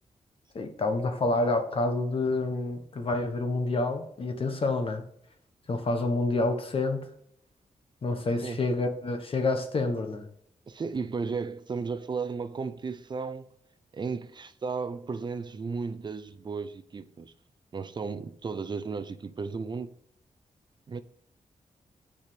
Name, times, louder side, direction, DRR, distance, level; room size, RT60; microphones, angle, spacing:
voice 1, 0.5-5.0 5.7-7.1 8.0-10.2, left 2 dB, 45° left, 1.3 m, -28 dB
voice 2, 10.7-13.5 13.9-17.3 17.7-19.9 20.9-21.0, right 4 dB, 35° right, 0.6 m, -34 dB
9.3 x 5.0 x 5.2 m
wide cardioid pair, 170°, 13 cm